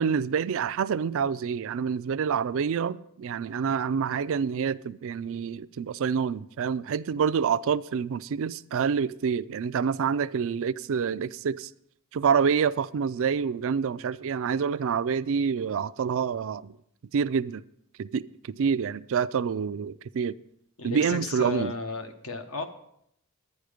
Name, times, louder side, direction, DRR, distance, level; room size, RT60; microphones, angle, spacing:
voice 1, 0.0-11.7 12.1-16.8 17.1-17.6 18.0-20.3 20.8-21.7, right 6 dB, 65° right, 0.4 m, -27 dB
voice 2, 20.8-22.6, left 3 dB, 70° left, 1.1 m, -34 dB
10.5 x 10.0 x 5.0 m
head